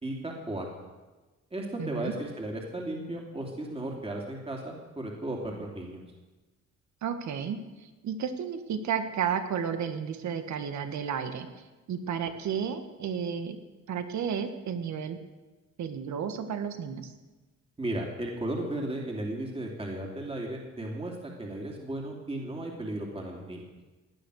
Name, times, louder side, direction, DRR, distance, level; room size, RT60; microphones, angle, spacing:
voice 1, 0.0-0.7 1.5-6.0 17.8-23.6, right 1 dB, 20° right, 0 dB, 2.9 m, -35 dB
voice 2, 1.8-2.1 7.0-7.6 8.0-11.5 11.9-13.6 13.9-15.2 15.8-17.1, right 7 dB, 70° right, 9 dB, 1.6 m, -32 dB
17.0 x 10.0 x 6.4 m, 1.2 s
cardioid pair, 90°, 30 cm